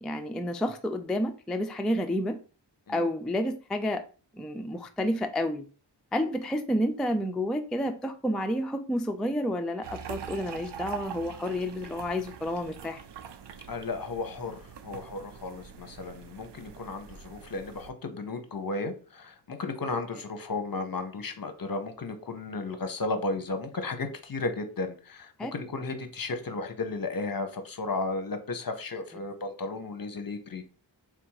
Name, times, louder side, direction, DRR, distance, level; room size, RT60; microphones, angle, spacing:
voice 1, 0.0-2.4 2.9-4.0 4.4-5.7 6.1-13.0 25.4-25.5, left 1 dB, ahead, 0.3 m, -30 dB
sound 1, 9.8-17.9, right 8 dB, 65° right, 0.5 m, -44 dB
voice 2, 13.7-30.6, left 3 dB, 50° left, 0.8 m, -34 dB
3.6 x 2.5 x 4.6 m
wide cardioid pair, 75°, 45 cm